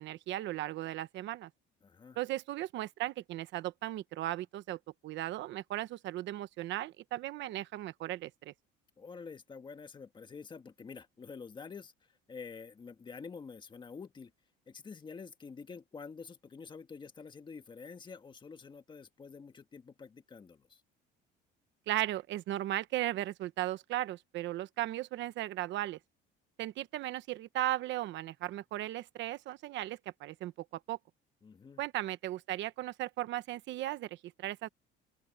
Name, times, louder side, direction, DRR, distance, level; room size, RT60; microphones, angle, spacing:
voice 1, 0.0-1.5 2.2-8.5 21.9-26.0 26.6-31.0 31.8-34.7, right 15 dB, 60° right, 1.1 m, -36 dB
voice 2, 1.8-2.2 9.0-11.9 12.3-14.3 14.7-20.8 31.4-31.8, left 5 dB, 20° left, 1.6 m, -48 dB
open air
cardioid pair, 145°, 21 cm